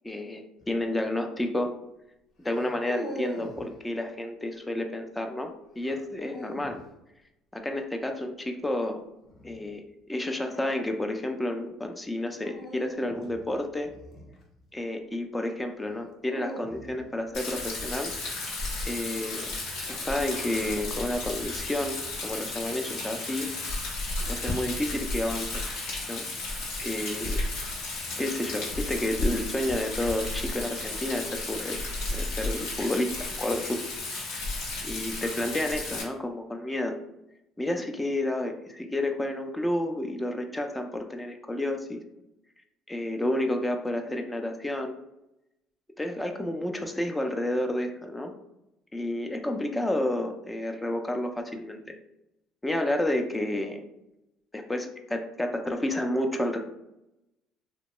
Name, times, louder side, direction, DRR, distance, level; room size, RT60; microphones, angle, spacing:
voice 1, 0.0-1.7 2.4-6.8 7.5-9.0 9.4-13.9 14.7-18.1 18.8-19.5 19.8-23.5 24.3-25.6 26.1-26.2 26.8-27.4 28.2-31.8 32.1-33.8 34.8-37.0 37.6-42.0 42.9-45.0 46.0-48.3 48.9-52.0 52.6-53.8 54.5-56.6, left 1 dB, 10° left, 5 dB, 0.4 m, -30 dB
sound 1, 0.6-0.9 2.4-3.7 5.8-6.8 9.2-9.6 12.4-14.8 15.8-17.1, equal, 50° left, 0.8 m, -41 dB
Rain, 17.3-36.0, left 2 dB, 85° left, 1.0 m, -33 dB
2.8 x 2.1 x 3.0 m, 0.87 s
supercardioid pair, 95°, 0 cm